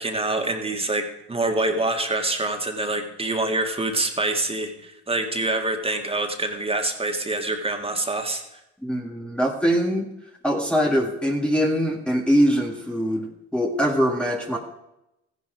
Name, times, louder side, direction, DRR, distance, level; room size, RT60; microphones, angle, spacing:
voice 1, 0.0-8.4, right 2 dB, 20° right, 4 dB, 2.1 m, -26 dB
voice 2, 8.8-10.1 10.4-14.6, equal, 5° left, -1 dB, 1.8 m, -22 dB
14.5 x 11.0 x 5.1 m, 0.88 s
supercardioid pair, 85°, 30 cm